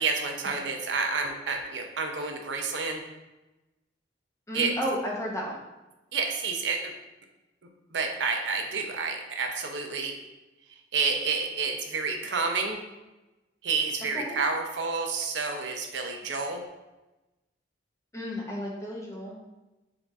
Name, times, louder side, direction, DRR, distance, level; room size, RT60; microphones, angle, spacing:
voice 1, 0.0-3.0 4.5-4.7 6.1-6.9 7.9-10.1 10.9-12.8 13.6-16.6, right 4 dB, 70° right, 3 dB, 0.6 m, -29 dB
voice 2, 4.5-5.6 14.1-14.4 18.1-19.4, equal, 15° left, -3 dB, 0.8 m, -33 dB
3.8 x 3.4 x 4.1 m, 1.0 s
head